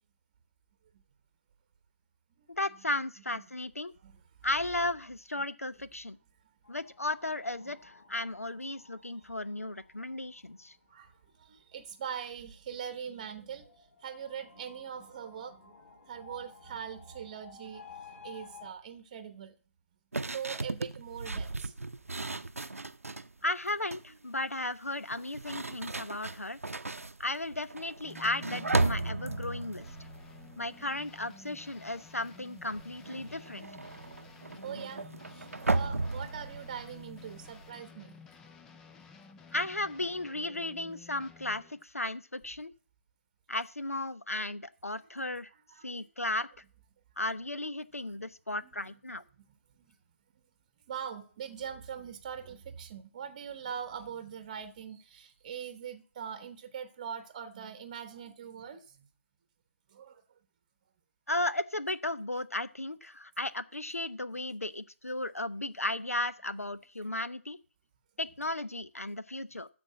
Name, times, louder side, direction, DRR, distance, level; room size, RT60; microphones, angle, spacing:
voice 1, 2.6-3.9 4.4-6.2 6.7-10.8 23.4-26.6 27.2-29.9 30.6-33.7 39.5-42.7 43.5-45.5 45.8-46.5 47.2-49.2 61.3-67.6 68.2-69.7, left 2 dB, 90° left, 0.8 m, -35 dB
sound 1, 6.6-12.0 13.5-18.7, left 5 dB, 65° left, 3.7 m, -54 dB
voice 2, 10.9-17.8 18.2-19.5 20.3-21.7 25.9-26.0 27.0-27.1 30.4-30.7 33.0-33.3 34.6-38.2 40.5-40.6 45.7-46.1 48.0-48.3 48.6-48.9 49.8-49.9 50.9-59.1 59.9-60.2 64.3-64.4 66.5-66.6, right 8 dB, 25° right, 0.9 m, -42 dB
sound 2, 20.1-23.3 23.7-24.2 25.0-31.3 31.6-31.9 32.2-37.7, right 2 dB, 80° right, 0.7 m, -35 dB
sound 3, 28.0-41.8, left 5 dB, 5° left, 0.4 m, -53 dB
13.0 x 4.4 x 7.4 m
figure-of-eight pair, 155°, 8 cm